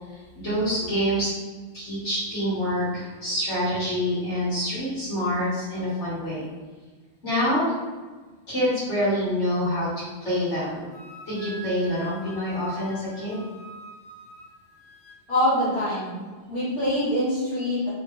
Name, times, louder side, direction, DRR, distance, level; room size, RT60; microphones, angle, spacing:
voice 1, 0.3-1.3 1.7-6.4 7.2-7.7 8.5-10.8 11.3-13.4, equal, 80° left, -10 dB, 1.7 m, -26 dB
Wind instrument woodwind instrument, 10.9-15.2, right 1 dB, 15° right, 1.0 m, -45 dB
voice 2, 15.3-16.2 16.5-17.9, left 1 dB, 55° left, -10 dB, 1.8 m, -24 dB
3.1 x 2.8 x 3.3 m, 1.4 s
omnidirectional pair, 1.2 m